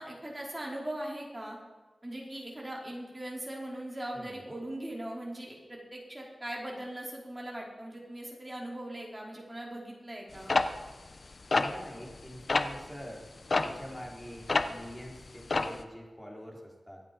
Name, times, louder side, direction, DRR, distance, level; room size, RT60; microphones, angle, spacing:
voice 1, 0.0-1.6 2.0-10.5, right 1 dB, 25° right, -2 dB, 4.9 m, -40 dB
voice 2, 4.1-4.5 11.6-13.3 13.6-17.0, equal, 10° left, -1 dB, 4.3 m, -45 dB
sound 1, 10.5-12.2 12.5-12.8 13.5-14.9 15.2-15.8, left 3 dB, 60° left, 0.9 m, -28 dB
24.0 x 8.8 x 5.4 m, 1.2 s
wide cardioid pair, 60°, 0 cm